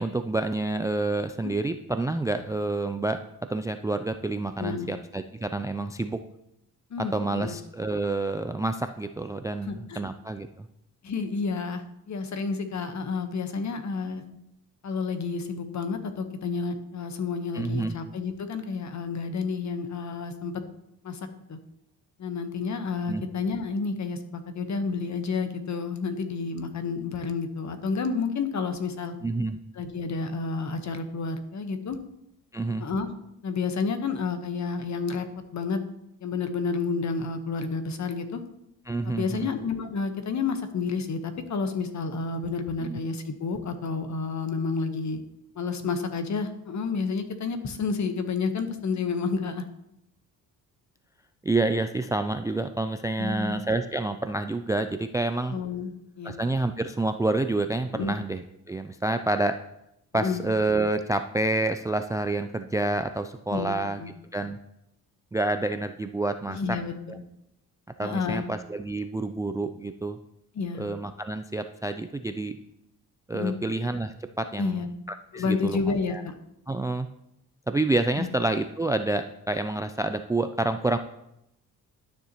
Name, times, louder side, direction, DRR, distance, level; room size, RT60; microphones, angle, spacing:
voice 1, 0.0-3.2 3.5-6.2 7.1-10.7 17.5-18.0 23.1-23.2 29.2-29.6 32.5-32.9 38.9-39.5 42.9-43.0 51.4-55.6 56.2-59.6 60.1-64.0 64.3-64.6 65.3-66.8 67.1-67.2 68.0-70.2 70.8-72.6 73.3-76.2 76.7-77.1 77.7-81.0, right 2 dB, 10° right, 9 dB, 0.3 m, -28 dB
voice 2, 6.9-7.6 9.6-10.0 11.0-14.2 14.8-20.5 21.0-21.2 21.5-21.6 22.2-29.1 29.7-32.0 32.8-33.1 33.4-35.3 35.5-35.8 36.2-38.4 39.0-45.2 45.5-49.6 53.2-53.5 55.5-56.3 57.9-58.2 60.1-60.4 63.5-64.1 66.5-67.2 68.0-68.5 70.5-70.8 73.3-73.6 74.6-74.9 75.3-76.3 78.2-78.3, left 4 dB, 45° left, 8 dB, 1.1 m, -30 dB
12.0 x 6.8 x 2.9 m, 0.82 s
cardioid pair, 80°, 38 cm